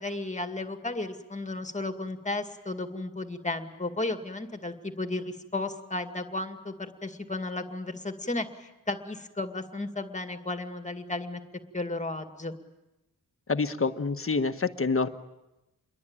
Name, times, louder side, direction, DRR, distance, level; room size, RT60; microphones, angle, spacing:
voice 1, 0.0-11.4 11.7-12.6, left 2 dB, 20° left, 6 dB, 2.2 m, -34 dB
voice 2, 13.5-15.1, left 4 dB, 40° left, 9 dB, 1.3 m, -27 dB
28.0 x 22.5 x 8.9 m, 0.99 s
wide cardioid pair, 125°, 34 cm